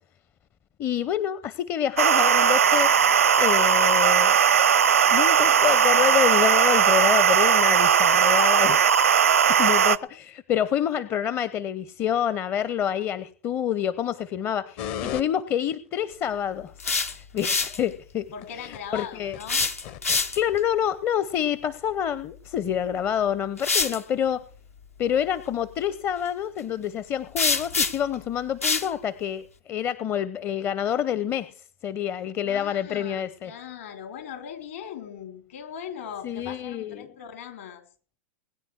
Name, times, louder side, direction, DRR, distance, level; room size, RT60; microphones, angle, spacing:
voice 1, 0.8-4.4 5.1-8.9 9.6-16.7 17.1-18.3 18.6-19.4 20.3-24.4 25.0-31.5 31.8-33.5 36.2-37.1, left 9 dB, 30° left, 16 dB, 0.7 m, -27 dB
sound 1, 2.0-10.0, right 8 dB, 75° right, 0.6 m, -19 dB
sound 2, 14.8-15.2 16.3-16.4 18.4-20.2 20.9-21.0, left 9 dB, 50° left, 0.9 m, -34 dB
sound 3, 16.6-17.8 19.4-20.6 22.6-22.8 23.6-24.0 27.4-28.1 28.6-28.9, left 4 dB, 85° left, 1.3 m, -25 dB
voice 2, 18.3-19.6 32.4-37.8, left 8 dB, 65° left, 7 dB, 3.5 m, -39 dB
21.0 x 10.0 x 4.7 m, 0.42 s
figure-of-eight pair, 95°, 8 cm